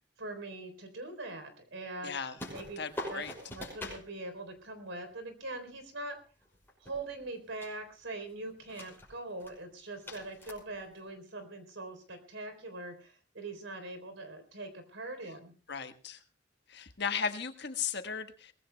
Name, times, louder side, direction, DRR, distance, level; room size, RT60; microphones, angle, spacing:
voice 1, 0.2-2.1 2.5-2.8 3.1-6.2 6.8-15.5, right 2 dB, 80° right, 8 dB, 3.7 m, -42 dB
voice 2, 2.0-2.4 2.8-3.3 15.7-16.2 16.7-18.5, left 6 dB, 60° left, 8 dB, 1.4 m, -36 dB
sound 1, 2.4-4.1 6.4-7.3 7.6-7.9 8.5-9.1 9.4-9.5 10.0-11.0, left 1 dB, 10° left, 6.3 m, -43 dB
23.0 x 19.0 x 2.3 m, 0.39 s
head